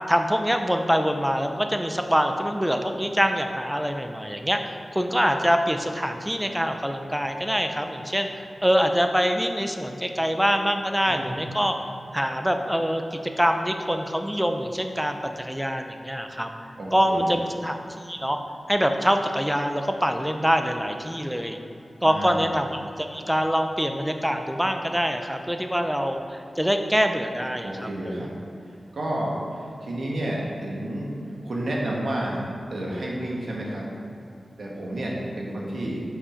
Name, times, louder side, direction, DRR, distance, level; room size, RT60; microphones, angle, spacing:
voice 1, 0.1-11.7 12.1-16.5 16.9-17.8 18.0-18.4 18.7-21.6 22.0-27.7, equal, 5° right, 5 dB, 0.7 m, -24 dB
voice 2, 11.1-11.5 16.8-17.5 22.0-22.4 27.6-28.3 28.6-31.1 31.4-33.9 34.6-36.0, right 1 dB, 75° right, -3 dB, 1.5 m, -31 dB
7.3 x 4.8 x 5.0 m, 2.7 s
cardioid pair, 50°, 0 cm